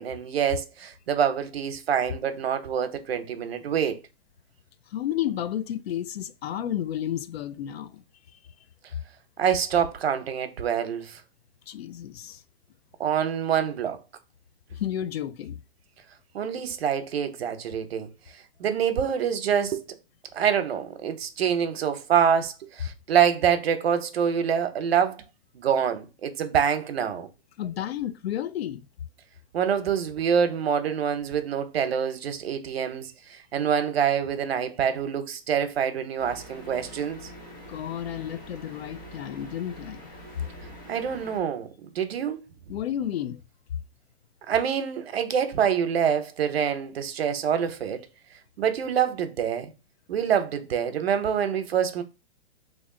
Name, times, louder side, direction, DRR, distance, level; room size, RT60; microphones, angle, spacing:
voice 1, 0.0-4.0 9.4-11.2 13.0-14.0 16.3-18.1 18.6-19.9 20.3-25.2 25.5-27.3 29.5-33.1 33.5-37.2 40.9-42.4 44.5-48.1 48.6-49.7 50.1-52.0, right 8 dB, 85° right, 0.8 m, -26 dB
voice 2, 4.9-8.0 11.7-12.4 14.7-15.6 27.6-28.9 37.7-40.1 42.7-43.4, left 11 dB, 85° left, 0.5 m, -31 dB
sound 1, 36.2-41.4, equal, 20° left, 0.6 m, -45 dB
3.0 x 2.5 x 3.7 m
hypercardioid pair, 175°, 30 cm